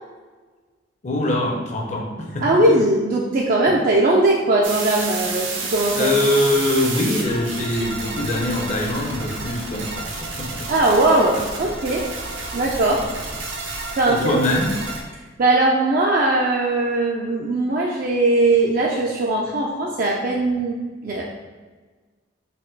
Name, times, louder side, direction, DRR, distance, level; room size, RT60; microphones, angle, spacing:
voice 1, 1.0-2.6 6.0-10.7 14.1-14.7, left 1 dB, 35° left, 0 dB, 0.6 m, -23 dB
voice 2, 2.4-6.1 10.7-12.1 12.5-13.1 13.9-14.4 15.4-20.8 21.0-21.2, right 2 dB, 45° right, -2 dB, 0.4 m, -19 dB
sound 1, 4.6-15.0, right 3 dB, 75° right, 0.8 m, -30 dB
4.2 x 2.2 x 3.9 m, 1.4 s
head